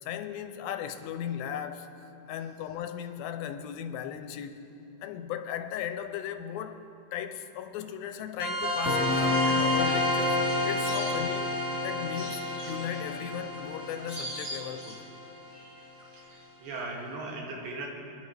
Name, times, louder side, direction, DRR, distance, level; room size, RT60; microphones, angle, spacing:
voice 1, 0.0-1.9 2.3-4.6 5.0-6.8 7.1-10.4 10.6-15.0, left 9 dB, 85° left, 2.5 m, -37 dB
sound 1, 8.4-15.5, left 2 dB, ahead, 2.8 m, -29 dB
sound 2, 10.4-11.7 12.1-15.5 15.8-16.4 16.7-16.8, right 1 dB, 20° right, 2.2 m, -43 dB
voice 2, 15.5-17.9, right 2 dB, 80° right, 3.6 m, -40 dB
25.0 x 11.0 x 3.4 m
omnidirectional pair, 4.1 m